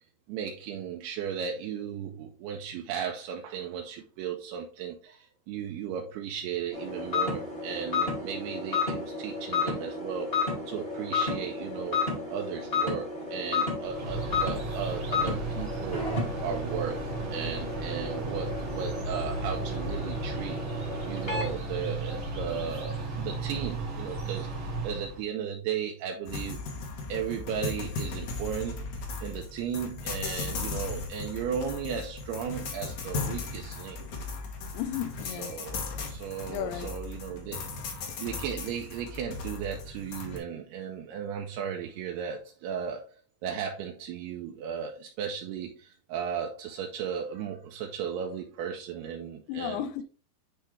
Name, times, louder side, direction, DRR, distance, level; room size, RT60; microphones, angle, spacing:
voice 1, 0.3-12.0 12.3-16.0 16.4-26.6 27.1-28.8 29.2-34.0 35.2-37.7 38.2-43.1 43.4-49.8, right 7 dB, 85° right, 2.4 m, -36 dB
sound 1, 6.7-21.6, left 4 dB, 30° left, 1.0 m, -32 dB
sound 2, 13.8-25.2, right 3 dB, 55° right, 1.5 m, -35 dB
sound 3, 26.3-40.4, left 4 dB, 65° left, 2.0 m, -37 dB
voice 2, 34.7-35.6 36.5-37.0 49.5-50.0, left 10 dB, 85° left, 2.7 m, -34 dB
9.8 x 3.3 x 3.1 m
omnidirectional pair, 5.2 m